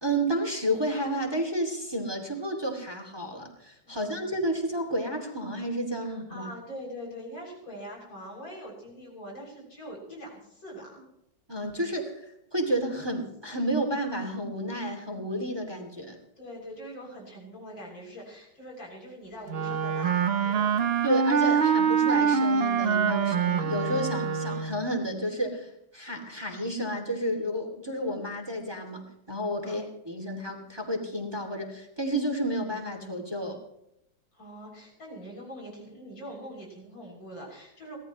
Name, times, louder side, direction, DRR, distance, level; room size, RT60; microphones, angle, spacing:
voice 1, 0.0-6.5 11.5-16.2 21.0-33.6, right 1 dB, 15° right, 3 dB, 2.7 m, -31 dB
voice 2, 3.8-4.3 6.0-11.1 16.4-20.9 29.6-29.8 34.3-38.0, equal, 85° left, -1 dB, 7.9 m, -43 dB
Wind instrument woodwind instrument, 19.5-24.8, right 6 dB, 45° right, 0.8 m, -25 dB
24.0 x 17.5 x 3.2 m, 0.79 s
omnidirectional pair, 2.0 m